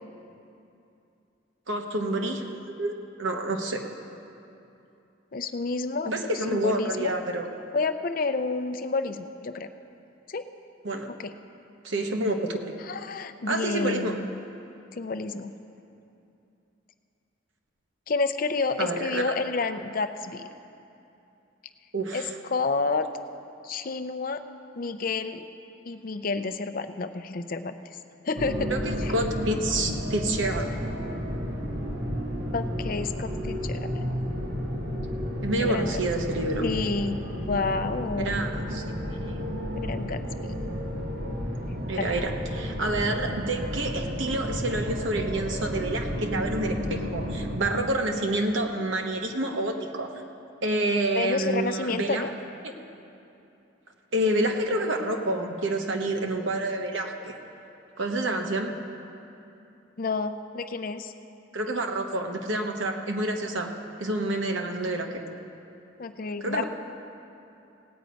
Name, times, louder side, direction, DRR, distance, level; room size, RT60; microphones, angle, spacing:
voice 1, 1.7-2.4 2.8-3.8 6.0-7.5 10.8-11.1 11.8-12.7 13.5-14.2 18.8-19.3 21.9-22.3 28.7-30.7 35.4-36.7 38.2-39.4 41.9-50.1 50.6-52.2 54.1-57.3 58.0-58.7 61.5-63.7 64.0-65.2 66.4-66.6, right 1 dB, 70° right, 3 dB, 1.1 m, -28 dB
voice 2, 5.3-6.1 6.5-7.1 7.7-9.7 10.3-10.4 11.2-11.3 12.9-14.3 14.9-15.5 18.1-20.5 22.1-22.3 22.5-23.1 23.6-24.4 24.8-25.4 25.8-27.8 28.2-28.7 29.0-29.1 32.5-34.1 35.6-35.9 36.6-38.4 39.7-40.5 42.0-42.1 51.1-52.3 60.0-61.1 66.0-66.6, left 3 dB, 45° left, 9 dB, 0.5 m, -30 dB
sound 1, 28.4-47.6, equal, 45° right, 1.5 m, -32 dB
17.5 x 8.1 x 5.2 m, 2.8 s
head